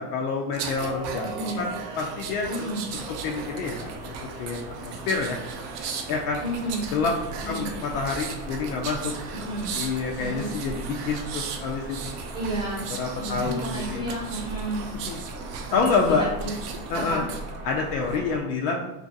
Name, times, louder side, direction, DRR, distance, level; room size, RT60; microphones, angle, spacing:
voice 1, 0.0-1.3 1.6-1.7 2.0-2.7 3.2-4.1 4.4-5.4 6.1-6.4 6.9-7.1 7.5-9.1 9.7-12.1 12.9-14.0 15.1-15.2 15.7-16.3 16.9-17.2 17.6-18.9, left 4 dB, 75° left, 0 dB, 0.6 m, -27 dB
sound 1, 0.5-17.5 17.9-18.2, right 5 dB, 80° right, 0.6 m, -37 dB
voice 2, 1.2-1.6 2.5-2.8 6.4-7.0 7.4-7.7 9.3-9.7 10.2-10.5 12.3-12.9 13.2-14.8 15.7-16.5 16.9-17.3, right 1 dB, 10° right, -4 dB, 0.9 m, -32 dB
sound 2, 2.9-18.4, right 2 dB, 25° right, 0.4 m, -39 dB
2.9 x 2.5 x 2.6 m, 0.89 s
supercardioid pair, 130°, 46 cm